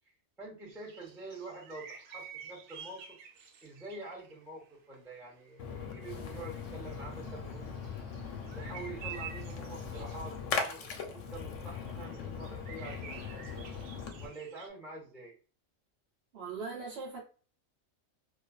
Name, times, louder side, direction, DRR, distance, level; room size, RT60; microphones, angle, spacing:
voice 1, 0.4-3.2 3.6-7.8 8.4-13.7 14.2-15.3, right 2 dB, ahead, 0.6 m, -46 dB
sound 1, 0.7-5.1 5.4-5.5 5.7-5.8 6.1-14.7, right 8 dB, 80° right, 1.0 m, -50 dB
Splash splatter, 5.6-14.3, left 5 dB, 70° left, 0.9 m, -39 dB
voice 2, 16.3-17.2, right 4 dB, 55° right, 0.9 m, -40 dB
2.4 x 2.3 x 2.3 m
omnidirectional pair, 1.4 m